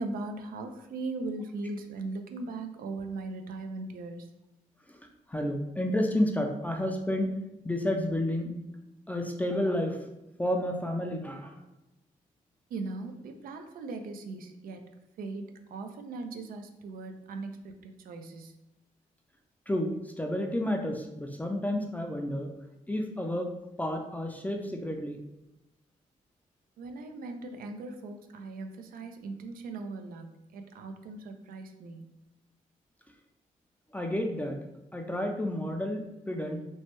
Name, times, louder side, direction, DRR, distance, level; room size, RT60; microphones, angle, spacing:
voice 1, 0.0-4.3 12.7-14.9 15.2-18.5 26.8-32.1, right 3 dB, 80° right, 6 dB, 0.4 m, -39 dB
voice 2, 4.9-7.3 7.6-8.5 9.1-10.1 10.4-11.6 19.7-22.5 22.9-23.5 23.8-25.2 33.9-34.6 34.9-36.6, left 1 dB, 10° left, 2 dB, 0.4 m, -31 dB
3.0 x 2.1 x 3.0 m, 0.97 s
cardioid pair, 70°, 15 cm